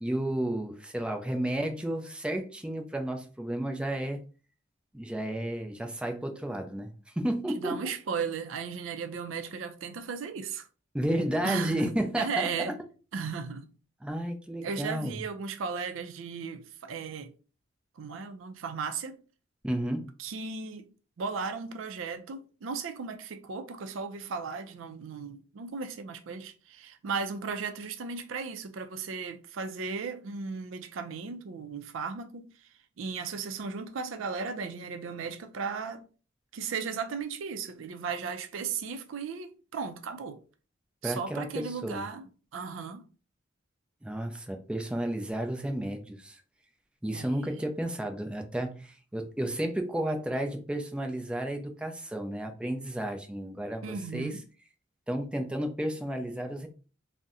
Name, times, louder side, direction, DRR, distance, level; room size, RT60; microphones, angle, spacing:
voice 1, 0.0-4.2 4.9-7.8 10.9-12.5 14.0-15.1 19.6-20.1 41.0-42.0 44.0-46.4 47.0-54.3 55.1-56.7, right 1 dB, 5° right, 0.4 m, -32 dB
voice 2, 7.5-10.7 11.4-12.8 13.1-13.7 14.6-17.3 18.0-19.2 20.2-20.9 21.2-32.7 33.0-36.0 36.5-40.4 41.0-43.1 47.1-47.3 53.8-54.5, right 5 dB, 90° right, 0.4 m, -36 dB
2.6 x 2.1 x 3.6 m
head